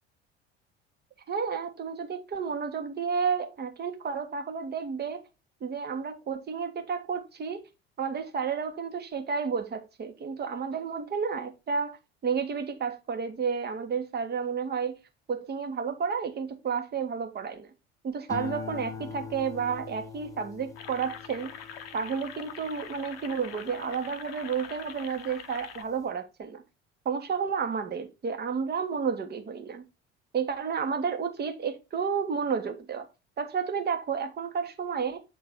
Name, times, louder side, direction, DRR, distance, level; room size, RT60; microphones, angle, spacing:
voice 1, 1.3-5.2 5.6-7.6 8.0-15.0 15.3-17.7 18.0-21.5 21.9-26.6 27.0-29.8 30.3-33.0 33.4-35.2, right 6 dB, 30° right, 1.3 m, -31 dB
sound 1, 18.3-24.8 25.3-25.8, left 5 dB, 10° left, 1.0 m, -43 dB
sound 2, 20.8-25.8, left 8 dB, 65° left, 0.8 m, -44 dB
8.4 x 3.8 x 4.2 m
figure-of-eight pair, 60°, 33 cm